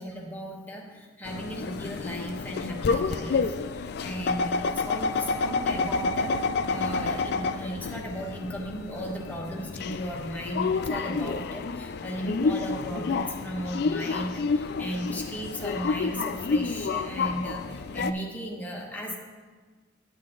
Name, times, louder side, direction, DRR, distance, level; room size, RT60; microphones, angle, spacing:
voice 1, 0.0-19.2, equal, 10° left, -1 dB, 1.1 m, -36 dB
sound 1, 1.3-18.1, left 4 dB, 55° left, 0.4 m, -29 dB
9.1 x 8.5 x 3.8 m, 1.4 s
head